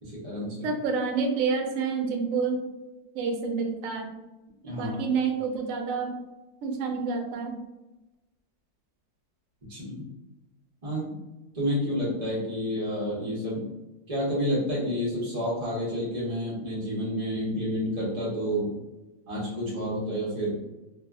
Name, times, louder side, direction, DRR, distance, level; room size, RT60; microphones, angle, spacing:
voice 1, 0.0-0.7 4.6-5.0 9.7-10.0 10.8-11.1 11.5-13.6 14.1-18.8 19.3-20.6, equal, 45° right, -7 dB, 0.4 m, -29 dB
voice 2, 0.6-2.6 3.1-4.1 4.8-6.2 6.6-7.6, right 5 dB, 70° right, 3 dB, 0.8 m, -28 dB
2.7 x 2.4 x 2.3 m, 1.0 s
omnidirectional pair, 1.8 m